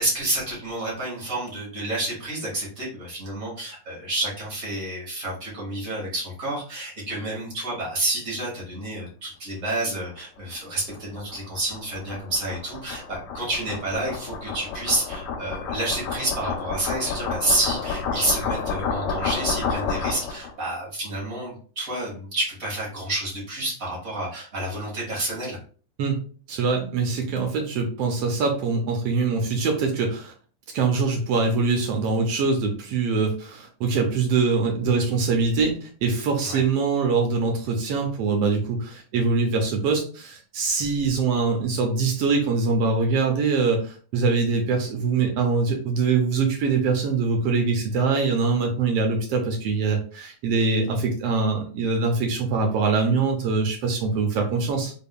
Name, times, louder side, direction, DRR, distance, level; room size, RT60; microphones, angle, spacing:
voice 1, 0.0-25.6 36.4-36.6, right 1 dB, 30° right, -4 dB, 1.9 m, -29 dB
sound 1, 10.5-20.5, left 5 dB, 80° left, 2.0 m, -30 dB
voice 2, 26.5-30.3 30.7-54.9, right 4 dB, 75° right, 2 dB, 1.5 m, -23 dB
4.5 x 3.7 x 2.2 m, 0.41 s
omnidirectional pair, 3.3 m